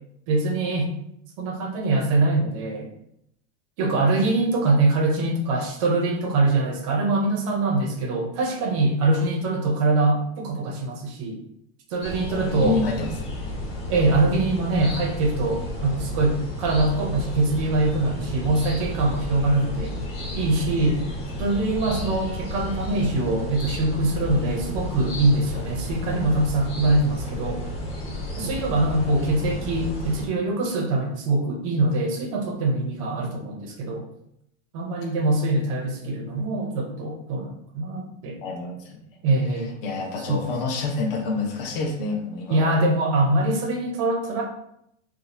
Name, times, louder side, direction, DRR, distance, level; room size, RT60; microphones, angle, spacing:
voice 1, 0.3-0.9 1.4-2.9 3.8-11.4 11.9-12.8 13.9-20.0 20.3-21.0 21.4-27.7 28.4-34.1 34.7-38.4 39.2-39.7 40.3-40.4 42.5-44.4, right 2 dB, 30° right, 1 dB, 0.5 m, -23 dB
sound 1, 12.0-30.3, left 1 dB, 35° left, 1.1 m, -32 dB
voice 2, 12.4-13.1 38.4-39.0 39.5-42.8, left 4 dB, 50° left, 0 dB, 0.7 m, -28 dB
2.6 x 2.3 x 4.1 m, 0.74 s
supercardioid pair, 170°, 36 cm